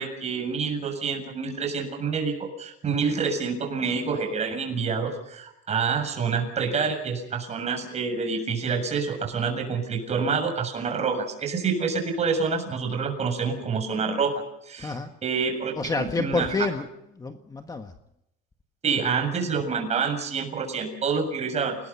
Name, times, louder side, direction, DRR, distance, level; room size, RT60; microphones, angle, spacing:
voice 1, 0.0-14.9 15.2-16.5 18.8-21.8, right 5 dB, 30° right, 4 dB, 7.3 m, -27 dB
voice 2, 14.8-15.1 15.7-17.9, left 3 dB, 15° left, 6 dB, 1.6 m, -29 dB
29.5 x 20.5 x 5.7 m, 0.79 s
cardioid pair, 135°, 21 cm